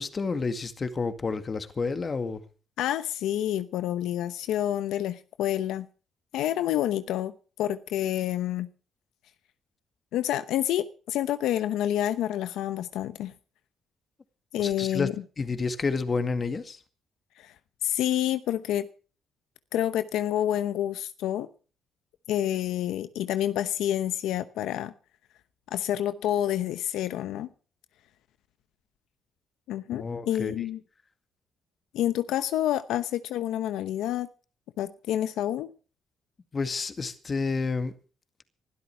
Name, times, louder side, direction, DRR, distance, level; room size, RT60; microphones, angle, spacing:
voice 1, 0.0-2.4 14.6-15.1 15.4-16.8 29.9-30.5 36.5-37.9, left 4 dB, 35° left, 2.0 m, -30 dB
voice 2, 2.8-5.9 6.3-7.3 7.6-8.7 10.1-13.3 14.5-15.1 17.4-17.5 17.8-18.9 19.7-21.5 22.3-24.9 25.7-27.5 29.7-30.8 31.9-34.3 34.8-35.7, left 12 dB, 90° left, 0.9 m, -28 dB
20.0 x 12.5 x 4.6 m
cardioid pair, 90°, 0 cm